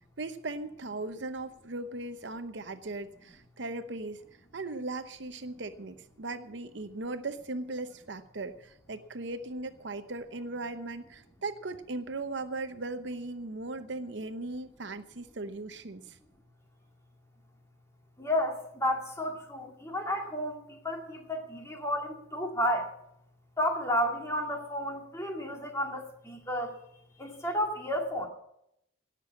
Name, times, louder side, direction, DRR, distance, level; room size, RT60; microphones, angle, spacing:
voice 1, 0.2-4.2 4.5-16.2, right 2 dB, 60° right, 10 dB, 0.8 m, -38 dB
voice 2, 18.2-22.9 23.6-26.7 27.2-28.3, equal, 15° left, 2 dB, 2.1 m, -32 dB
18.0 x 6.9 x 8.4 m, 0.79 s
head